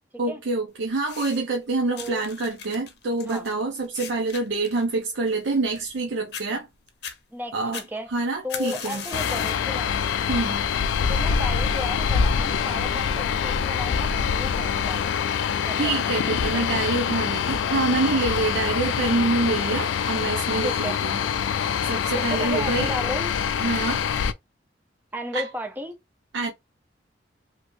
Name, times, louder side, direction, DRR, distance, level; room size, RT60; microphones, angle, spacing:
voice 1, 0.2-6.7 7.5-7.8 8.1-9.0 10.3-10.7 15.8-21.2 21.8-22.9 23.6-24.0 25.3-25.5 26.3-26.5, right 3 dB, 85° right, 0.6 m, -26 dB
sound 1, 1.0-1.6 2.0-6.0 6.3-6.5 6.9-7.2 7.7-9.7 10.1-10.5 11.3-11.4, left 7 dB, 60° left, 0.7 m, -38 dB
voice 2, 1.9-2.2 3.3-3.4 7.3-8.1 8.4-9.9 11.1-15.3 15.6-16.2 16.5-16.8 20.6-21.0 22.1-23.3 25.1-26.0, equal, 10° right, 0.5 m, -34 dB
sound 2, 9.1-24.3, left 7 dB, 90° left, 0.3 m, -25 dB
3.0 x 2.9 x 2.5 m
head